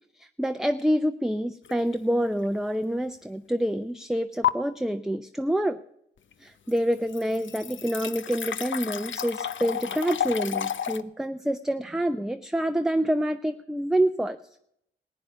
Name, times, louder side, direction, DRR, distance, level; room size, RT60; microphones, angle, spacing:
voice 1, 0.2-5.8 6.4-14.4, equal, ahead, 9 dB, 0.6 m, -27 dB
sound 1, 1.7-1.9 2.4-2.5 4.4-4.5 6.3-6.4 6.7-11.0, left 9 dB, 70° left, 0.7 m, -31 dB
15.0 x 9.4 x 6.9 m, 0.74 s
cardioid pair, 55°, 21 cm